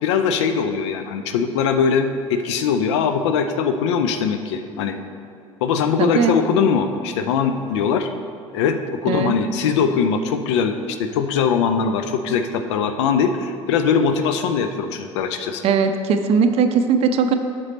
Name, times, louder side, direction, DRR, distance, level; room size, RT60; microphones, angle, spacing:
voice 1, 0.0-5.0 5.6-8.1 8.5-15.7, left 6 dB, 60° left, 8 dB, 0.4 m, -21 dB
voice 2, 6.0-6.4 9.1-9.3 15.6-17.3, right 5 dB, 40° right, 7 dB, 0.5 m, -19 dB
8.0 x 5.3 x 4.0 m, 2.6 s
figure-of-eight pair, 65°, 16 cm